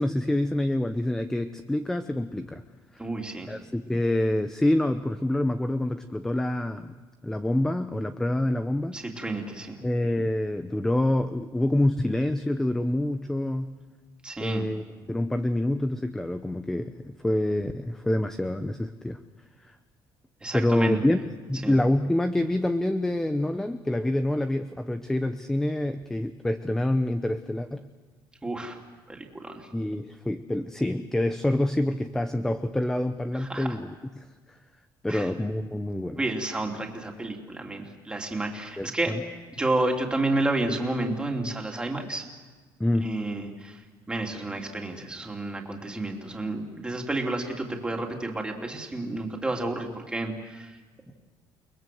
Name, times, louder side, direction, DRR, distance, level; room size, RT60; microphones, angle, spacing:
voice 1, 0.0-2.6 2.9-3.0 3.5-6.9 7.2-8.9 9.8-13.8 14.4-19.2 20.5-27.9 29.7-34.3 35.0-36.2 38.8-39.2 42.8-43.2, left 1 dB, 5° left, 9 dB, 0.8 m, -27 dB
voice 2, 3.0-3.6 8.9-9.8 14.2-14.7 20.4-21.1 21.6-21.8 28.4-28.8 29.1-29.7 33.3-33.7 35.1-35.3 36.2-39.2 39.5-42.2 43.0-43.7 44.1-50.7, right 2 dB, 10° right, 1 dB, 3.2 m, -30 dB
29.5 x 20.5 x 7.8 m, 1.3 s
cardioid pair, 140°, 8 cm